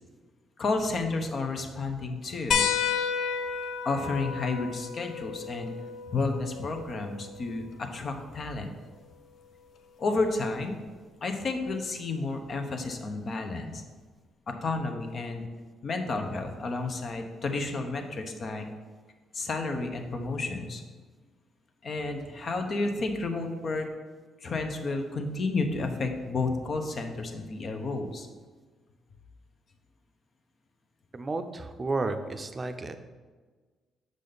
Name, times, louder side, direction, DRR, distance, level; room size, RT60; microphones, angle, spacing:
voice 1, 0.6-2.7 3.8-5.7 6.1-8.7 10.0-10.8 11.2-13.8 14.5-15.5 15.8-18.7 19.3-20.8 21.8-23.9 24.4-28.3, left 3 dB, 50° left, 5 dB, 0.9 m, -31 dB
sound 1, 2.5-7.6 9.1-9.2 10.9-11.0, left 7 dB, 70° left, 0.4 m, -32 dB
voice 2, 31.1-33.0, right 3 dB, 30° right, 8 dB, 0.6 m, -32 dB
6.6 x 5.1 x 4.0 m, 1.4 s
cardioid pair, 90°, 0 cm